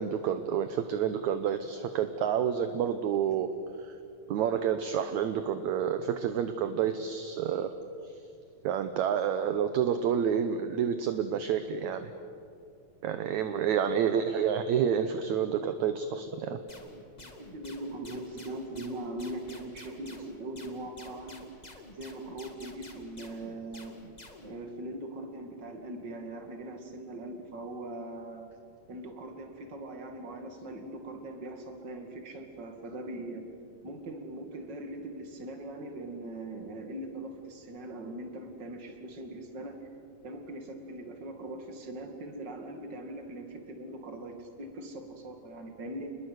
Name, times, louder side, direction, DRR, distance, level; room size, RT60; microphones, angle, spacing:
voice 1, 0.0-3.5 3.8-3.9 4.3-7.7 8.0-8.1 8.6-12.1 13.0-16.6, right 8 dB, 70° right, 9 dB, 2.0 m, -29 dB
sound 1, 16.7-24.5, left 1 dB, 20° left, 1.3 m, -50 dB
voice 2, 17.2-21.5 21.9-24.0 24.4-28.5 28.9-33.5 33.8-39.9 40.2-46.1, right 1 dB, 35° right, 5 dB, 2.6 m, -41 dB
29.0 x 21.5 x 8.1 m, 2.5 s
omnidirectional pair, 4.0 m